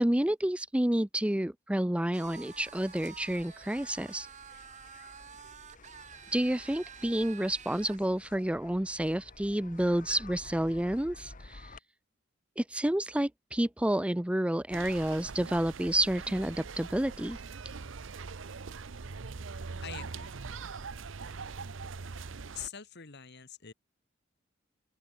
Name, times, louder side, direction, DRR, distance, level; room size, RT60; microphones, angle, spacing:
voice 1, 0.0-4.3 6.3-11.7 12.6-17.4, right 1 dB, 5° right, 0.5 m, -29 dB
sound 1, 2.1-8.0, right 7 dB, 40° right, 0.8 m, -50 dB
sound 2, 2.2-11.8, left 3 dB, 45° left, 1.6 m, -53 dB
sound 3, 14.7-22.7, right 4 dB, 80° right, 0.8 m, -42 dB
voice 2, 19.8-20.4 22.5-23.7, left 8 dB, 60° left, 2.0 m, -44 dB
open air
head